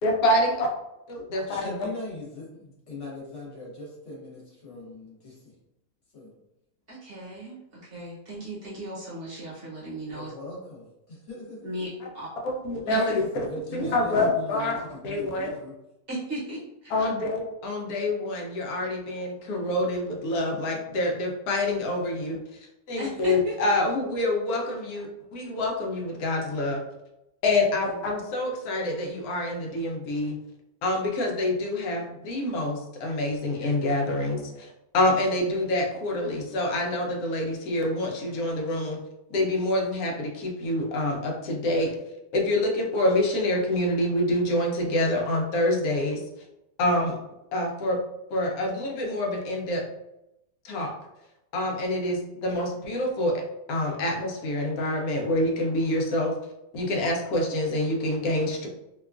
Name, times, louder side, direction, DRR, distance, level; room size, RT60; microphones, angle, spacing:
voice 1, 0.0-0.7 1.1-1.4 12.7-13.3 13.7-14.8 15.0-15.5 16.9-22.4 22.9-26.8 27.4-30.4 30.8-39.0 39.3-41.9 42.3-46.2 46.8-47.2 47.5-48.0 48.3-49.8 50.6-50.9 51.5-53.4 53.7-56.4 56.7-58.7, left 1 dB, 90° left, 0 dB, 1.1 m, -26 dB
voice 2, 1.5-5.5 6.1-6.3 10.0-11.7 12.8-15.8, left 2 dB, 55° left, -5 dB, 1.3 m, -40 dB
voice 3, 6.9-10.3 11.6-11.9 12.9-13.0 16.1-17.1 23.0-23.5 27.8-28.0, right 1 dB, 50° right, -7 dB, 0.9 m, -36 dB
2.8 x 2.2 x 2.3 m, 0.88 s
omnidirectional pair, 1.5 m